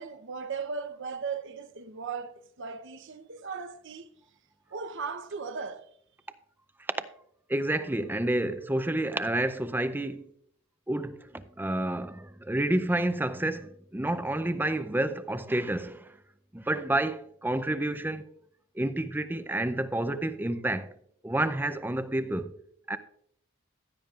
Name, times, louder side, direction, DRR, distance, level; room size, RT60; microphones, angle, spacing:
voice 1, 0.0-4.1 4.7-5.9, right 5 dB, 60° right, 0.8 m, -37 dB
voice 2, 7.5-10.3 10.9-16.2 16.5-18.2 18.7-20.9 21.2-22.5 22.9-23.0, right 1 dB, 10° right, 0.5 m, -29 dB
15.5 x 8.9 x 2.5 m
head